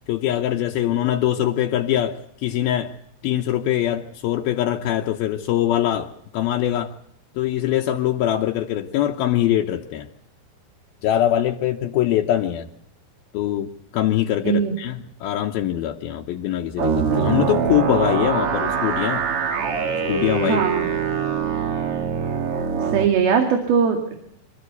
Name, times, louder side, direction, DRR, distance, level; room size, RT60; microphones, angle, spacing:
voice 1, 0.1-2.9 3.2-6.9 7.4-10.1 11.0-12.7 13.3-19.2 20.1-20.6 22.8-22.9, left 12 dB, 75° left, 3 dB, 2.8 m, -23 dB
sound 1, 16.8-23.0, right 6 dB, 50° right, 2.0 m, -23 dB
voice 2, 20.5-20.9 22.8-24.2, right 6 dB, 70° right, 5 dB, 4.1 m, -20 dB
26.0 x 15.0 x 8.2 m, 0.71 s
omnidirectional pair, 4.5 m